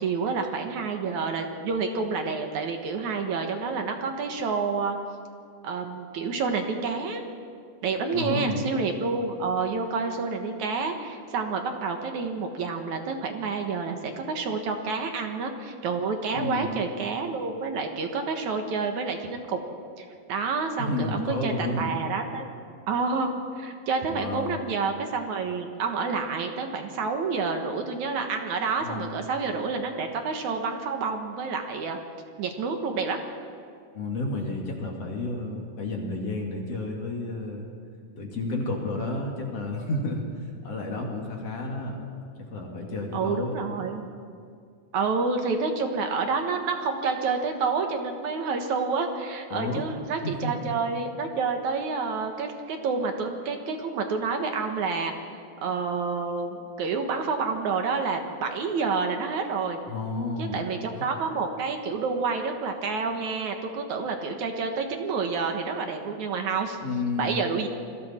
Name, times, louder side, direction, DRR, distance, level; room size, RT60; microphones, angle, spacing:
voice 1, 0.0-5.0 5.6-7.2 7.8-19.6 20.0-22.5 22.9-23.3 23.6-32.0 32.4-33.2 43.1-44.0 44.9-59.8 60.4-66.8 67.2-67.7, right 4 dB, 60° right, 5 dB, 2.5 m, -29 dB
voice 2, 8.1-8.6 16.3-16.8 20.8-22.0 24.1-24.6 28.8-29.2 33.9-37.7 38.2-40.2 40.6-42.0 42.5-43.5 49.5-49.8 50.2-50.7 59.9-60.6 60.9-61.1 66.8-67.4, left 2 dB, 45° left, 0 dB, 3.1 m, -31 dB
28.5 x 21.5 x 4.4 m, 2.2 s
omnidirectional pair, 4.1 m